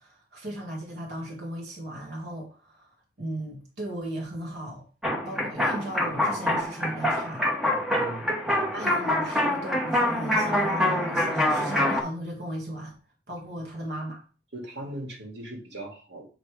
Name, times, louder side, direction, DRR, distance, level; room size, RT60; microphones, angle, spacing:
voice 1, 0.0-4.9 5.2-7.4 8.5-13.0 13.3-14.2, right 1 dB, 65° right, 1.5 m, -36 dB
sound 1, 5.0-12.0, left 1 dB, 5° right, 1.1 m, -25 dB
voice 2, 8.0-9.0 14.5-16.3, right 1 dB, 85° right, 2.2 m, -39 dB
7.4 x 3.1 x 4.8 m
head